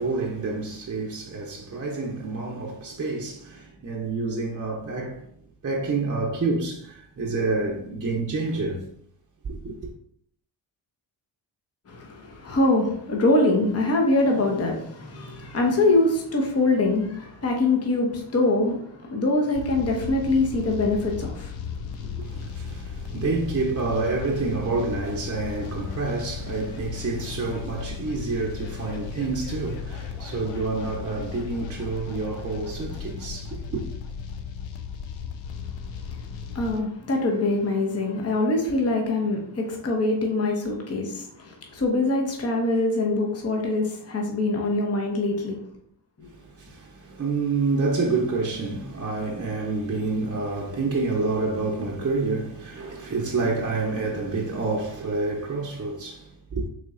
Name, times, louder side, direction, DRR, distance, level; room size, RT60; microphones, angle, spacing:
voice 1, 0.0-5.3 5.6-8.9 9.4-9.9 22.2-33.8 46.3-56.7, right 3 dB, 30° right, 0.8 m, -28 dB
voice 2, 11.9-22.5 36.1-36.2 36.5-45.6 46.2-46.3, left 2 dB, 30° left, 0.9 m, -24 dB
sound 1, 19.5-36.8, left 6 dB, 65° left, 0.7 m, -36 dB
4.1 x 3.1 x 2.5 m
supercardioid pair, 55°, 49 cm